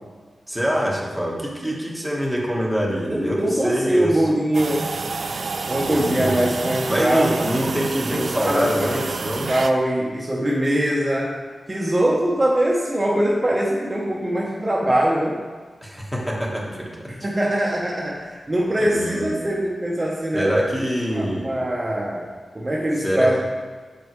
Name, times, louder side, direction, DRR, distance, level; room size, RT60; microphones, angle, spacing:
voice 1, 0.5-4.2 5.7-6.4 6.9-9.5 15.8-17.1 18.8-19.4 20.3-21.5 23.0-23.3, equal, 5° left, -4 dB, 1.3 m, -25 dB
voice 2, 3.1-4.9 5.7-7.5 8.1-8.9 9.5-11.3 11.7-15.4 17.1-20.5 21.1-23.4, right 1 dB, 25° right, -4 dB, 0.8 m, -22 dB
sound 1, 4.5-9.7, right 4 dB, 65° right, 0.4 m, -29 dB
7.2 x 5.3 x 3.1 m, 1.4 s
wide cardioid pair, 80°, 0 cm